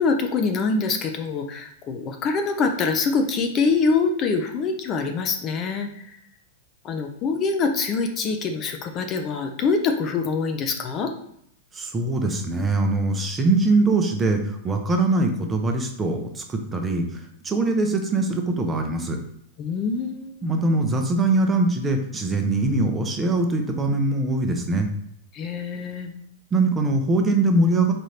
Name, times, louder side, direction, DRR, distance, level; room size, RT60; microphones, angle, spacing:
voice 1, 0.0-6.2 6.8-11.1 19.6-20.4 25.3-26.2, left 4 dB, 35° left, 5 dB, 0.5 m, -24 dB
voice 2, 11.7-19.2 20.4-24.9 26.5-27.9, right 2 dB, 15° right, 4 dB, 0.6 m, -22 dB
4.2 x 2.5 x 3.2 m, 0.72 s
hypercardioid pair, 120°, 0 cm